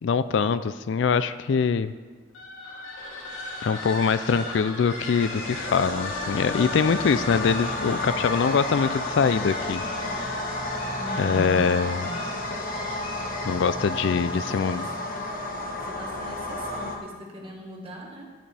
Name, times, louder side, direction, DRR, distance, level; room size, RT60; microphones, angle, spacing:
voice 1, 0.0-1.9 3.6-9.8 11.2-12.1 13.4-14.9, left 5 dB, 60° left, 13 dB, 0.3 m, -23 dB
sound 1, 2.3-13.7, left 2 dB, 85° left, 2.8 m, -37 dB
sound 2, 5.1-17.0, left 2 dB, 45° left, 1.1 m, -32 dB
voice 2, 11.0-12.3 14.1-15.3 15.8-18.4, left 1 dB, 25° right, -1 dB, 1.7 m, -40 dB
16.5 x 7.7 x 3.4 m, 1.5 s
head